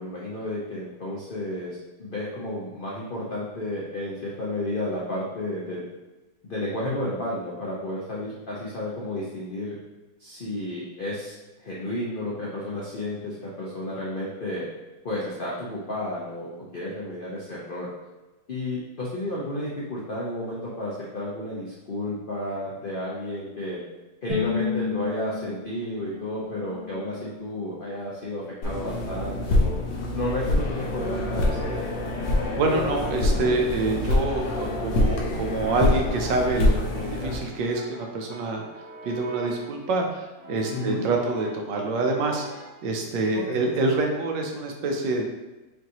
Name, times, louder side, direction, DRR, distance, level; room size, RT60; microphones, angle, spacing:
voice 1, 0.0-5.8 6.4-9.8 10.2-14.6 15.0-16.5 16.7-17.9 18.5-23.8 24.2-29.7 30.1-31.6 40.7-41.1 43.5-43.6, left 1 dB, 70° left, -6 dB, 0.5 m, -32 dB
Bowed string instrument, 24.3-27.5, left 5 dB, 35° right, 1.2 m, -31 dB
Brass instrument, 25.7-27.6 28.4-30.4 31.1-39.8 40.4-41.7 42.0-42.9, right 1 dB, 60° right, 1.4 m, -47 dB
sound 1, 28.6-37.4, left 2 dB, 85° left, 1.5 m, -25 dB
voice 2, 32.6-45.2, right 2 dB, 75° right, 2 dB, 1.3 m, -26 dB
5.7 x 2.6 x 2.9 m, 1.1 s
omnidirectional pair, 2.0 m